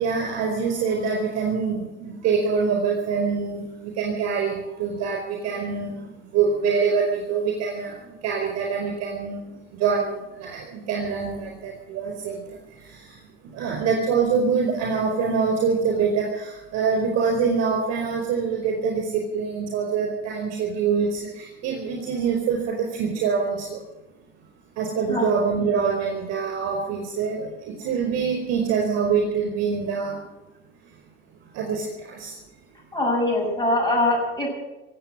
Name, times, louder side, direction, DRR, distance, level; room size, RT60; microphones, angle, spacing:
voice 1, 0.0-6.0 6.3-9.5 9.8-13.2 13.5-23.8 24.8-30.2 31.5-32.4, right 5 dB, 60° right, 0 dB, 4.8 m, -25 dB
voice 2, 32.9-34.5, left 1 dB, 10° left, -2 dB, 6.8 m, -22 dB
17.5 x 8.4 x 9.9 m, 1.1 s
supercardioid pair, 105°, 30 cm